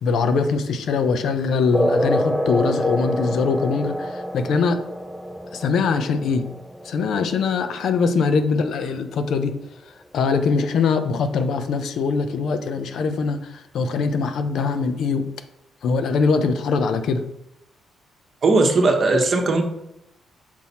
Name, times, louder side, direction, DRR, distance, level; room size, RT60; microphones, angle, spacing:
voice 1, 0.0-4.8 5.5-6.5 6.8-9.5 9.9-15.3 15.8-17.2, left 5 dB, 70° left, 9 dB, 0.6 m, -22 dB
sound 1, 1.7-8.7, equal, ahead, 0.4 m, -27 dB
voice 2, 18.4-19.6, right 3 dB, 40° right, 3 dB, 1.0 m, -18 dB
5.7 x 4.5 x 4.2 m, 0.82 s
cardioid pair, 120°, 0 cm